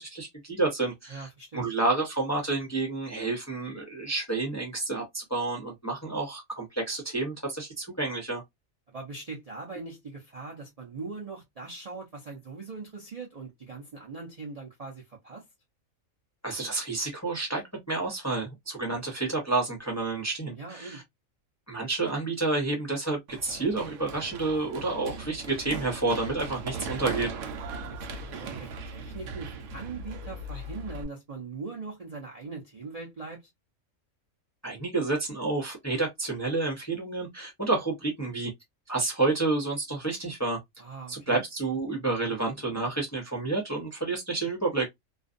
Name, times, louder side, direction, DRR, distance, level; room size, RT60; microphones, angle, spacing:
voice 1, 0.0-1.3 1.5-8.4 16.4-21.0 21.7-27.3 34.6-38.5 38.9-40.6 41.1-44.9, right 3 dB, 15° left, 0.6 m, -29 dB
voice 2, 1.1-1.7 8.9-15.5 20.6-21.0 28.0-33.5 40.8-41.4, right 4 dB, 40° right, 0.5 m, -41 dB
Run, 23.3-31.0, right 3 dB, 70° right, 0.9 m, -38 dB
2.5 x 2.3 x 2.5 m
omnidirectional pair, 1.4 m